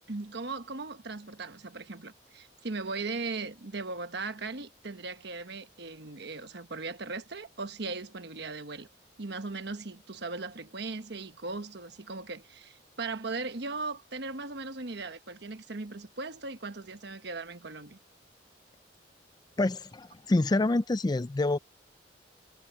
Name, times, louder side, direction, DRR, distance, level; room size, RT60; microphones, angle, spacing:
voice 1, 0.1-8.9 9.2-18.0, right 3 dB, 60° right, 1.2 m, -38 dB
voice 2, 19.6-21.6, left 2 dB, 20° left, 0.4 m, -27 dB
head